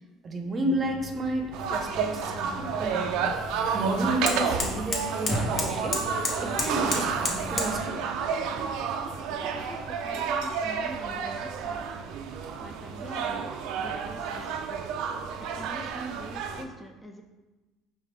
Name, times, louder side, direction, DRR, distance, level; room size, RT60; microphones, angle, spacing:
voice 1, 0.2-3.2 3.7-6.0 6.4-8.0, right 1 dB, 35° right, 4 dB, 0.7 m, -31 dB
sound 1, 0.7-7.9, left 4 dB, 75° left, 1.0 m, -46 dB
sound 2, 1.0-7.8, left 2 dB, 40° left, 0.9 m, -34 dB
sound 3, 1.5-16.6, right 6 dB, 75° right, 0.4 m, -31 dB
voice 2, 9.0-12.1 12.6-14.9 15.3-17.2, equal, 15° left, 3 dB, 0.5 m, -44 dB
4.9 x 3.2 x 3.3 m, 1.1 s
supercardioid pair, 95°, 0 cm